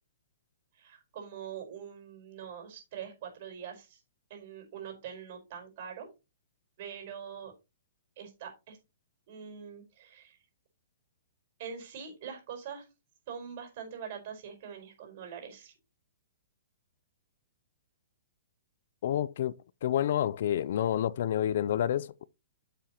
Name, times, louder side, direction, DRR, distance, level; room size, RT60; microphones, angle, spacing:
voice 1, 0.7-4.0 4.3-6.1 6.8-7.5 8.2-8.8 9.3-10.4 11.6-12.8 13.3-15.7, right 7 dB, 45° right, 4.5 m, -43 dB
voice 2, 19.0-22.3, left 10 dB, 60° left, 0.4 m, -29 dB
10.0 x 7.1 x 2.9 m
hypercardioid pair, 150°, 0 cm